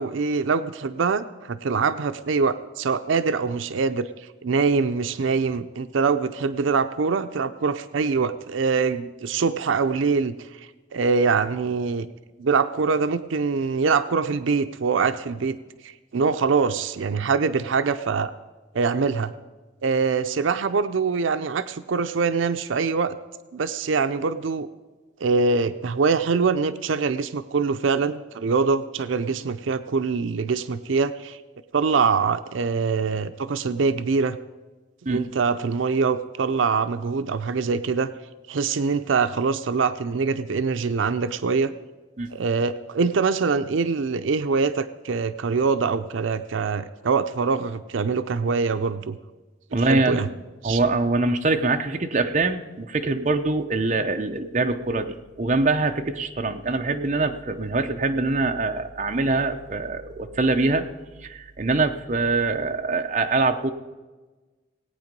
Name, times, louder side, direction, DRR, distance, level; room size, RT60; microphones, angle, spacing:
voice 1, 0.0-12.1 12.4-15.6 15.8-18.3 18.7-19.3 19.8-23.1 23.5-24.7 25.2-31.4 31.7-34.4 35.1-38.1 38.5-41.7 42.3-49.2 49.8-50.3 50.6-50.8, right 5 dB, 80° right, 10 dB, 0.5 m, -24 dB
voice 2, 49.7-50.2 50.6-60.9 61.2-63.7, right 3 dB, 35° right, 5 dB, 0.7 m, -24 dB
18.5 x 9.0 x 5.3 m, 1.3 s
head